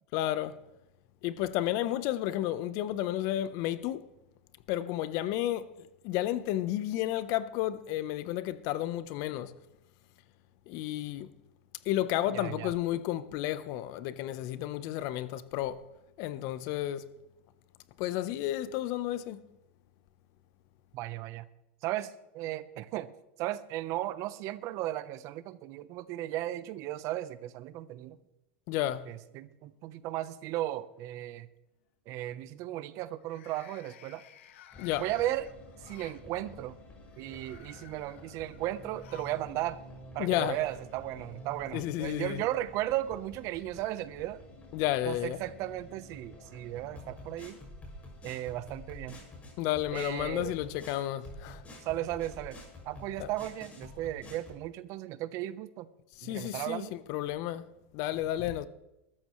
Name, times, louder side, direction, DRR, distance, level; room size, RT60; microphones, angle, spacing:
voice 1, 0.1-0.6 1.2-4.1 4.7-9.6 10.7-11.3 11.8-15.8 16.2-17.1 18.0-19.4 28.7-29.1 34.8-35.0 40.2-40.6 41.7-42.4 44.7-45.4 49.6-51.6 53.2-53.3 56.2-57.6 57.9-58.7, left 13 dB, 55° left, 1.0 m, -32 dB
voice 2, 12.3-12.7 20.9-21.5 21.8-23.1 23.4-28.2 29.1-31.5 32.1-34.2 35.0-35.5 35.8-36.8 37.2-39.8 40.1-44.4 45.0-47.6 48.2-49.2 49.9-50.5 51.8-52.6 52.8-55.9 56.2-57.0, right 14 dB, 50° right, 1.0 m, -35 dB
sound 1, 29.6-30.2 30.6-31.0 33.1-36.2 37.0-39.5 39.8-39.9 41.0-41.1, left 10 dB, 75° left, 1.6 m, -55 dB
sound 2, 34.7-54.6, left 1 dB, 20° left, 6.7 m, -49 dB
21.5 x 13.5 x 3.2 m
hypercardioid pair, 115°, 7 cm